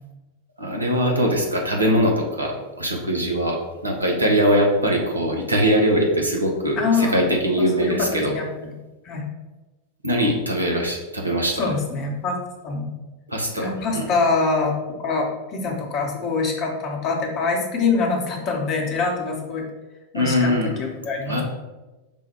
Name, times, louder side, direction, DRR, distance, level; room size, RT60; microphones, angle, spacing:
voice 1, 0.6-8.3 10.0-11.7 13.3-14.1 20.1-20.7 21.3-21.4, equal, 85° right, 0 dB, 0.8 m, -22 dB
voice 2, 6.8-7.2 7.6-8.7 9.0-9.3 11.6-12.4 12.6-12.9 13.6-14.7 15.0-15.3 15.5-19.6 20.1-21.4, left 4 dB, 35° left, 1 dB, 1.0 m, -24 dB
5.3 x 2.3 x 4.3 m, 1.1 s
figure-of-eight pair, 90°, 0 cm